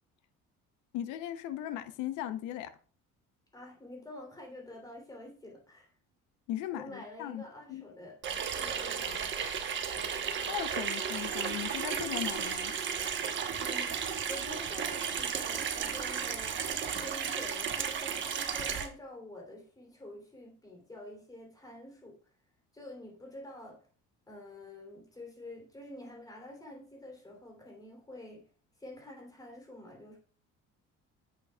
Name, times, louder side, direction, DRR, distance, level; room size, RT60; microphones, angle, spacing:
voice 1, 0.9-2.7 6.5-7.4 7.7-7.8 10.5-12.7, left 12 dB, 80° left, 0.8 m, -37 dB
voice 2, 3.5-5.9 6.7-9.5 13.5-16.6 17.0-22.2 22.7-23.8 24.3-28.5 28.8-30.2, left 1 dB, 15° left, 3.2 m, -48 dB
Water tap faucet / Sink (filling or washing), 8.2-18.9, right 7 dB, 40° right, 1.1 m, -34 dB
9.2 x 8.1 x 2.3 m
cardioid pair, 140°, 29 cm